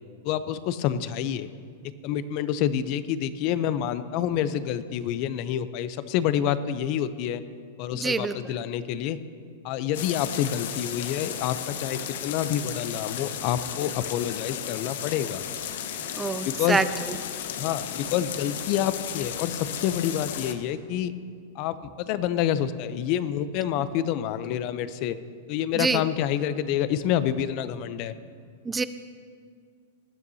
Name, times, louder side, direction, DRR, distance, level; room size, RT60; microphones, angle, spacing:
voice 1, 0.2-1.5 2.0-7.4 7.8-9.2 9.6-15.4 16.4-16.8 17.6-21.1 21.5-25.2 25.5-28.1, left 10 dB, 40° left, 13 dB, 0.6 m, -28 dB
voice 2, 7.9-8.4 16.2-17.2 25.8-26.0 28.7-28.8, right 4 dB, 10° right, 13 dB, 0.4 m, -26 dB
sound 1, 9.9-20.5, left 9 dB, 65° left, 0.9 m, -34 dB
19.0 x 12.5 x 2.8 m, 2.1 s
supercardioid pair, 150°, 0 cm